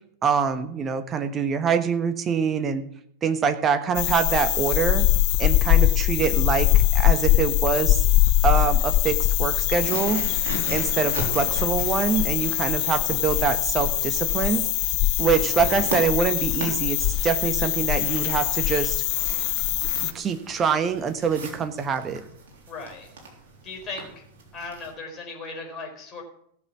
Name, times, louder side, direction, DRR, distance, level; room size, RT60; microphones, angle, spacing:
voice 1, 0.2-2.8 3.2-5.0 5.4-8.1 8.4-10.2 10.7-14.6 15.2-19.0 20.0-22.2, right 6 dB, 25° right, 9 dB, 1.3 m, -25 dB
sound 1, 3.9-20.1, left 15 dB, 45° left, 0.5 m, -22 dB
sound 2, 9.7-24.9, right 2 dB, 55° right, 3.7 m, -39 dB
voice 2, 22.7-23.1 23.6-24.3 24.5-26.2, left 3 dB, 25° left, 1 dB, 4.6 m, -37 dB
16.5 x 6.9 x 6.2 m, 0.69 s
figure-of-eight pair, 90°, 0 cm